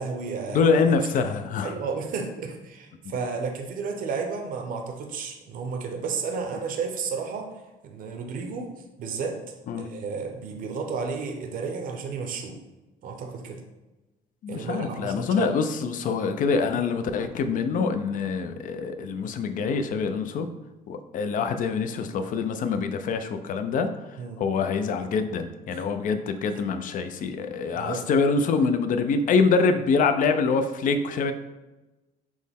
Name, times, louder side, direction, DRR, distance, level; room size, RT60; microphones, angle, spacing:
voice 1, 0.0-0.6 1.6-7.5 7.8-8.7 9.0-9.4 9.8-12.6 13.0-13.6 14.5-15.5 24.2-24.4 25.7-25.8 27.7-28.1, right 5 dB, 55° right, 3 dB, 0.6 m, -32 dB
voice 2, 0.5-1.7 9.7-9.9 14.4-20.5 20.9-23.9 24.4-31.3, left 5 dB, 50° left, 8 dB, 0.4 m, -25 dB
6.1 x 2.1 x 3.5 m, 1.1 s
cardioid pair, 110°, 17 cm